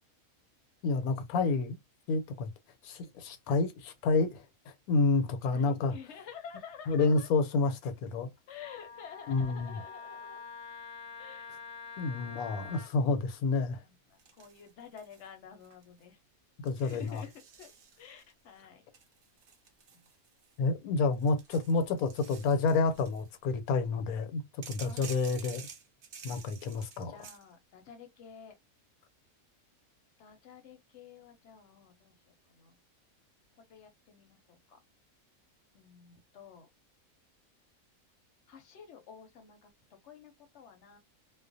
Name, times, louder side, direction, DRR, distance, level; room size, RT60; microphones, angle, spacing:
voice 1, 0.8-1.8 2.1-2.5 2.8-4.4 4.9-5.9 6.9-8.3 9.3-9.8 12.0-13.8 16.6-17.2 20.6-24.4 24.7-25.7 26.2-27.2, left 3 dB, 80° left, 1.1 m, -29 dB
voice 2, 5.5-7.3 8.5-10.4 11.2-11.5 12.6-12.8 13.6-16.2 16.8-17.3 17.6-17.7 18.0-18.8 24.8-25.1 27.1-28.5 30.2-32.8 33.6-34.8 35.7-36.7 38.5-39.7 40.0-41.0, left 7 dB, 60° left, 0.8 m, -50 dB
Wind instrument woodwind instrument, 8.6-12.9, left 5 dB, 30° left, 0.7 m, -46 dB
sound 1, 14.2-15.3 15.6-16.0 16.7-18.3 18.9-20.7 21.1-23.3 24.6-27.4, right 6 dB, 60° right, 0.6 m, -51 dB
2.3 x 2.1 x 2.5 m
omnidirectional pair, 1.5 m